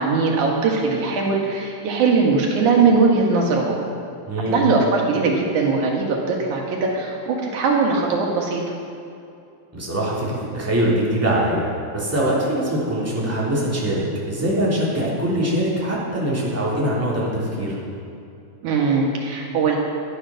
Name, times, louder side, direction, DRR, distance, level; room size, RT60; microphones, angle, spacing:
voice 1, 0.0-3.8 4.5-8.7 18.6-19.8, right 4 dB, 85° right, 0 dB, 3.2 m, -20 dB
voice 2, 4.3-4.6 9.7-17.8, right 1 dB, 5° right, -7 dB, 3.2 m, -23 dB
12.0 x 11.5 x 6.4 m, 2.7 s
omnidirectional pair, 3.4 m